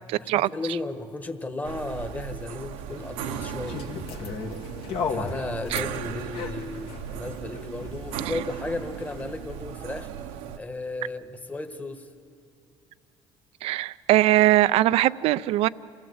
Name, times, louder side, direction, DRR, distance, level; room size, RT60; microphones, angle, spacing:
voice 1, 0.2-3.8 5.1-10.1 10.5-12.1, left 2 dB, 15° left, 7 dB, 1.5 m, -34 dB
sound 1, 1.6-10.6, right 9 dB, 90° right, 1.0 m, -37 dB
sound 2, 2.9-9.4, left 5 dB, 60° left, 1.9 m, -36 dB
voice 2, 13.6-15.7, right 16 dB, 70° right, 16 dB, 0.5 m, -21 dB
27.5 x 18.0 x 8.0 m, 2.5 s
cardioid pair, 115°, 11 cm